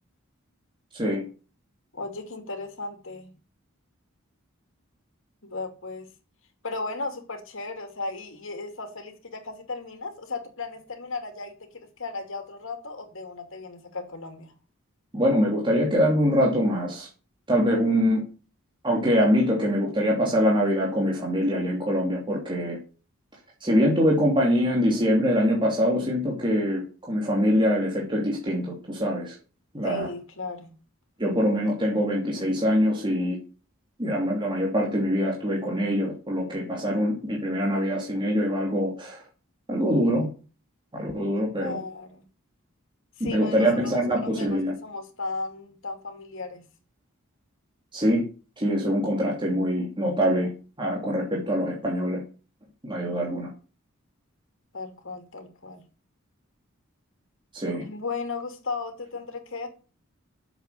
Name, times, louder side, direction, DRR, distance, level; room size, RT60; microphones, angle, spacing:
voice 1, 0.9-1.2 15.1-17.1 17.5-18.2 18.8-22.8 23.6-26.8 27.1-29.3 29.7-30.1 31.2-33.4 34.0-39.2 39.7-40.3 40.9-41.8 43.2-44.7 47.9-48.2 48.6-50.5 50.8-52.2 52.8-53.5 57.5-57.8, equal, 25° right, 2.8 m, -24 dB
voice 2, 1.9-3.3 5.4-6.1 6.6-14.5 29.8-30.7 41.6-42.2 43.2-46.6 54.7-55.8 57.7-59.7, left 3 dB, 65° left, 2.7 m, -36 dB
8.1 x 7.5 x 8.4 m
head